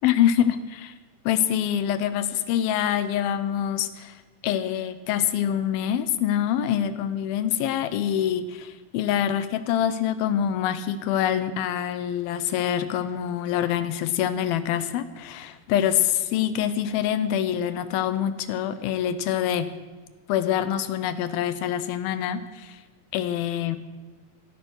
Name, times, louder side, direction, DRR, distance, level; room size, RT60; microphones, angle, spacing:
voice 1, 0.0-0.9 1.3-4.2 4.4-19.7 20.3-22.8 23.1-23.8, left 10 dB, 90° left, 12 dB, 2.8 m, -25 dB
15.5 x 13.0 x 6.3 m, 1.4 s
omnidirectional pair, 4.2 m